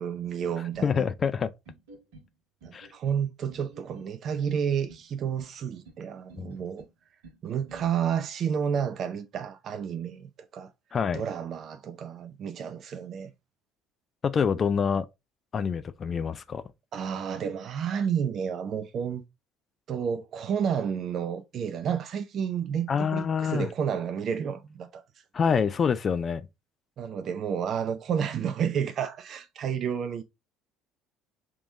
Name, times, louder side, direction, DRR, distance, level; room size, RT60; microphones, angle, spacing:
voice 1, 0.0-1.1 2.6-6.9 7.4-10.7 11.1-13.3 16.9-19.2 19.9-25.0 27.0-30.2, right 7 dB, 45° right, 0.4 m, -31 dB
sound 1, 0.7-1.4 1.6-2.3 2.6-3.2 3.5-4.1 4.4-5.1 5.4-6.0 6.3-6.9 7.2-7.9, right 3 dB, 65° right, 1.4 m, -50 dB
voice 2, 0.8-1.5 2.7-2.9 6.4-6.5 10.9-11.2 14.2-15.1 15.5-16.6 22.9-23.7 25.3-26.5, left 6 dB, 35° left, 0.4 m, -26 dB
3.6 x 2.9 x 3.6 m
figure-of-eight pair, 55°, 0 cm